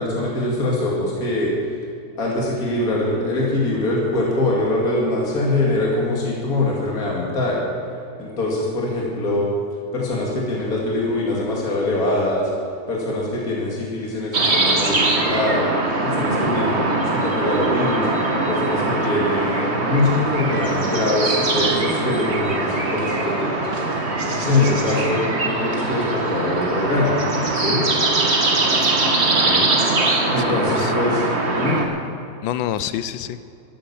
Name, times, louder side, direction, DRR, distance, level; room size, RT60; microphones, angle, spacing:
voice 1, 0.0-1.5 2.2-7.6 8.2-9.5 9.9-12.5 12.9-15.6 16.0-18.1 18.5-23.5 24.2-27.8 30.3-31.2 31.6-31.8, left 2 dB, 50° left, -4 dB, 2.8 m, -23 dB
sound 1, 14.3-31.9, right 2 dB, 35° right, 1.7 m, -22 dB
voice 2, 29.4-29.7 30.4-30.9 32.4-33.4, left 11 dB, 90° left, 13 dB, 1.4 m, -28 dB
13.5 x 13.5 x 7.1 m, 2.6 s
omnidirectional pair, 2.0 m